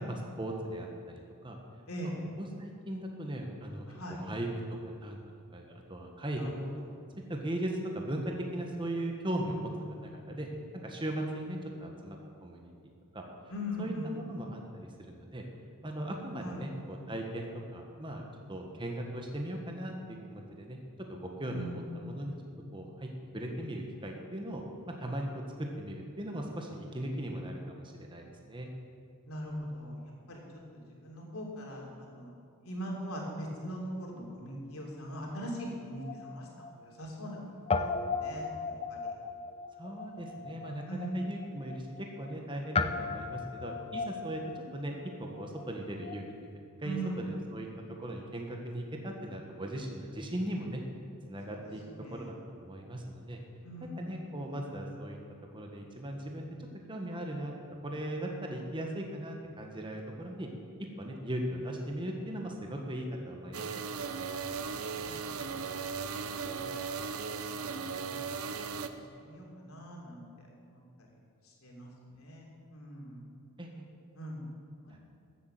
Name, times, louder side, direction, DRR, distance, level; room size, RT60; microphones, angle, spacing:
voice 1, 0.0-1.6 2.0-2.1 2.4-4.5 5.0-5.2 5.5-6.5 7.3-9.7 10.0-10.5 10.8-12.7 13.1-13.2 13.8-15.4 15.8-17.5 17.7-20.8 21.1-22.3 22.7-28.7 39.8-44.4 44.7-46.2 46.8-47.7 48.0-50.8 51.3-51.8 52.1-53.4 53.8-55.2 55.5-56.5 56.9-57.5 57.8-60.5 60.8-63.8 73.6-73.8 74.9-75.0, right 1 dB, 25° right, 1 dB, 1.4 m, -38 dB
voice 2, 3.9-4.2 6.3-6.6 9.3-10.4 13.5-14.2 16.4-16.6 21.4-21.9 26.9-27.1 29.3-30.0 30.3-30.4 31.0-32.3 32.6-37.4 37.8-39.0 40.9-41.2 46.8-47.2 51.5-51.6 51.9-52.3 53.6-54.2 64.9-65.6 66.5-67.0 67.5-68.2 68.8-70.2 70.6-70.8 71.4-73.2 74.1-74.5, equal, 85° left, -1 dB, 3.3 m, -41 dB
Guitar, 35.6-37.4 37.7-46.3, left 4 dB, 30° left, 0.6 m, -37 dB
sound 1, 63.5-68.9, right 5 dB, 85° right, 0.8 m, -37 dB
13.5 x 8.5 x 7.7 m, 2.3 s
head